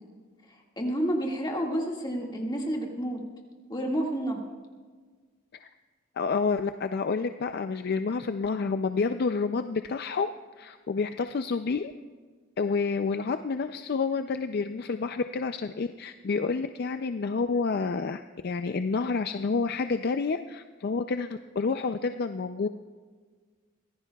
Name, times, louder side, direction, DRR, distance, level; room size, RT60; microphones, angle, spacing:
voice 1, 0.8-3.2 3.7-4.4, right 1 dB, 20° left, 0 dB, 1.9 m, -29 dB
voice 2, 6.2-10.3 10.6-11.9 12.6-22.7, left 4 dB, 50° left, 8 dB, 0.4 m, -29 dB
24.0 x 16.5 x 2.3 m, 1.5 s
head